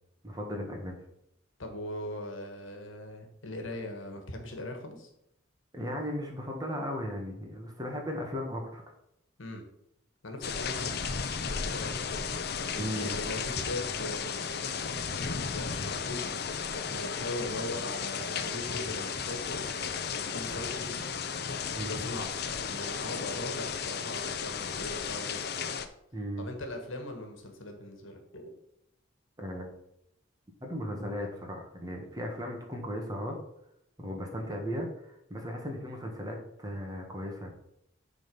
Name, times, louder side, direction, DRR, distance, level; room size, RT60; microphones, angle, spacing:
voice 1, 0.2-0.9 5.7-8.8 12.8-13.1 21.7-22.0 26.1-26.5 29.4-29.7 30.6-33.4 34.0-37.5, equal, 20° right, 2 dB, 1.5 m, -36 dB
voice 2, 1.6-5.1 9.4-9.6 10.2-11.1 11.4-12.2 12.7-16.3 16.8-19.6 20.1-21.0 21.8-22.3 22.7-25.6 26.4-28.5, left 1 dB, 75° left, 4 dB, 1.6 m, -40 dB
sound 1, 10.4-25.9, left 6 dB, 50° left, 0.6 m, -34 dB
9.9 x 4.0 x 5.4 m, 0.78 s
head